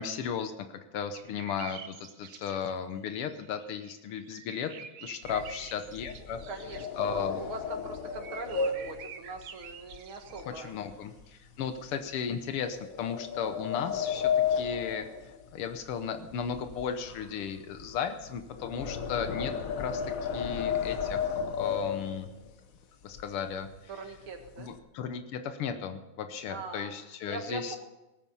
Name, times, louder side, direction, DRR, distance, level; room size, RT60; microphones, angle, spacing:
voice 1, 0.0-4.7 5.0-6.4 7.0-7.4 10.5-20.0 20.3-22.3 23.0-23.7 24.6-27.8, left 7 dB, 85° left, 8 dB, 1.9 m, -35 dB
sound 1, 1.1-2.8 3.1-6.9 7.7-10.8 11.8-11.9, right 7 dB, 55° right, 1.2 m, -48 dB
sound 2, 5.2-10.6 10.9-11.2 11.7-11.9 12.7-16.0 16.3-22.5 23.1-23.2 23.5-23.8 24.1-24.8, left 7 dB, 55° left, 1.0 m, -34 dB
voice 2, 6.2-10.9 19.4-19.7 23.9-24.7 26.5-26.9 27.2-27.8, right 3 dB, 70° right, 4 dB, 2.6 m, -42 dB
18.5 x 9.6 x 5.6 m, 1.0 s
omnidirectional pair, 2.4 m